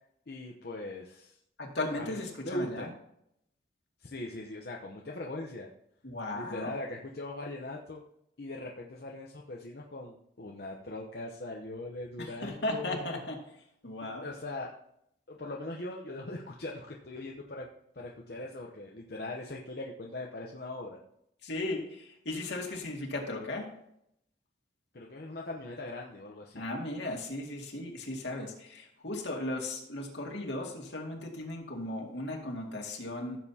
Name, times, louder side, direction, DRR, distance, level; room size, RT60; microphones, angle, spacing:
voice 1, 0.3-1.4 2.0-2.2 2.4-2.9 4.0-5.7 6.3-8.0 8.4-13.2 14.0-14.7 15.3-17.7 17.9-21.0 24.9-26.6, left 2 dB, 60° left, -1 dB, 0.9 m, -40 dB
voice 2, 1.6-2.9 6.0-6.8 12.2-13.4 13.8-14.3 21.4-23.7 26.5-33.4, left 2 dB, 80° left, 0 dB, 2.3 m, -36 dB
15.5 x 7.6 x 2.9 m, 0.76 s
head